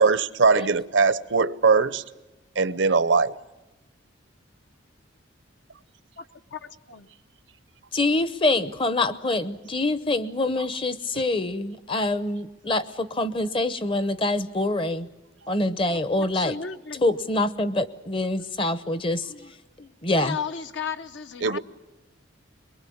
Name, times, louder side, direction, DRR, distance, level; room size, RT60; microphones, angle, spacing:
voice 1, 0.0-2.0 2.6-3.4 21.4-21.6, right 4 dB, 65° right, 0.7 m, -20 dB
voice 2, 6.5-7.1 15.9-17.2 19.3-19.5 19.8-19.9 20.2-21.6, left 6 dB, 60° left, 0.9 m, -35 dB
voice 3, 7.9-15.1 15.5-16.5 17.0-19.3 20.0-20.4, left 2 dB, 25° left, 0.8 m, -25 dB
23.0 x 22.5 x 8.5 m
head